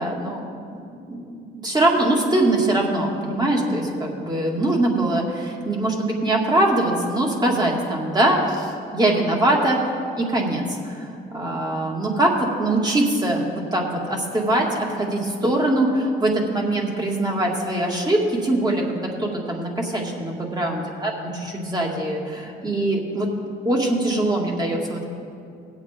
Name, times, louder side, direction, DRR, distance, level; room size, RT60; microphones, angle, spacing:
voice 1, 0.0-9.8 10.1-23.3 23.6-25.0, right 1 dB, 20° right, -1 dB, 2.1 m, -22 dB
18.5 x 8.1 x 3.6 m, 2.5 s
cardioid pair, 90°, 20 cm